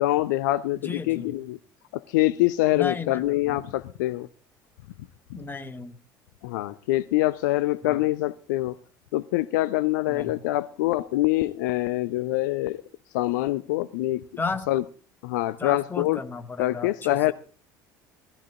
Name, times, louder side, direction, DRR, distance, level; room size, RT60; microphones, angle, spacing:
voice 1, 0.0-1.6 1.9-4.3 6.4-8.8 9.1-12.8 13.1-14.3 14.7-14.8 15.2-16.2 16.6-17.3, left 17 dB, 65° left, 0.6 m, -25 dB
voice 2, 0.8-1.3 2.7-3.6 5.3-6.0 7.8-8.0 10.1-10.4 14.4-14.7 15.6-17.3, left 4 dB, 20° left, 2.1 m, -34 dB
19.0 x 14.5 x 3.8 m
figure-of-eight pair, 65°, 11 cm